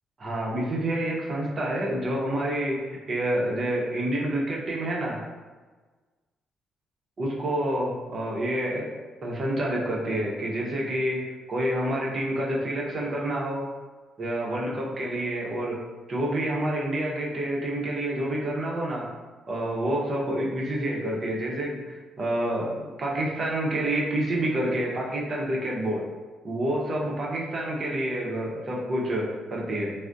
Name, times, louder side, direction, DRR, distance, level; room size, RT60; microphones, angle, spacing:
voice 1, 0.2-5.2 7.2-8.9 9.2-13.7 14.2-15.8 16.1-19.1 19.5-26.1 26.4-29.9, right 1 dB, 45° right, -2 dB, 0.7 m, -28 dB
3.4 x 2.0 x 2.5 m, 1.4 s
cardioid pair, 90°, 0 cm